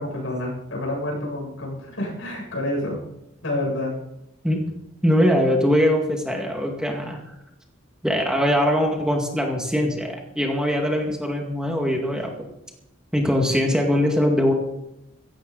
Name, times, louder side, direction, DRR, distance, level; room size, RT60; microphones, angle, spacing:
voice 1, 0.0-3.0 3.4-3.9, left 1 dB, 80° left, -2 dB, 7.6 m, -28 dB
voice 2, 5.0-7.2 8.0-12.3 13.1-14.5, equal, 5° right, 1 dB, 2.1 m, -21 dB
16.5 x 16.0 x 4.1 m, 0.84 s
head